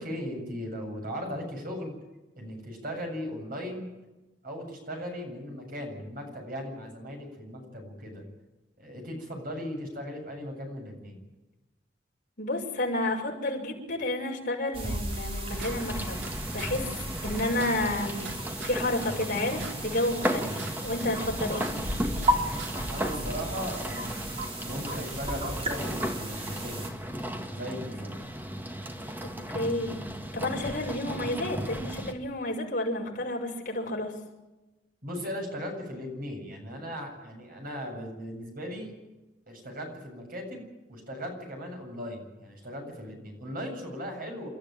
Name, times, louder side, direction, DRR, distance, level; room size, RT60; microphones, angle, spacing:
voice 1, 0.0-2.0 2.4-3.9 4.4-8.2 8.8-11.2 22.9-26.9 27.5-28.1 35.0-38.9 39.5-40.6 40.9-44.5, equal, 55° right, 2 dB, 7.7 m, -38 dB
voice 2, 12.4-16.9 17.2-18.2 18.6-21.7 29.2-30.0 30.3-34.1, left 1 dB, 50° left, -1 dB, 6.2 m, -31 dB
sound 1, 14.7-26.9, right 1 dB, 35° right, 4.1 m, -35 dB
sound 2, 15.1-16.3 16.6-16.7 17.0-17.1 17.3-18.8 19.1-20.7 21.0-22.3 22.6-22.7, right 5 dB, 85° right, 3.0 m, -43 dB
sound 3, 15.5-32.1, equal, 10° right, 2.0 m, -35 dB
29.0 x 13.5 x 9.0 m, 1.1 s
head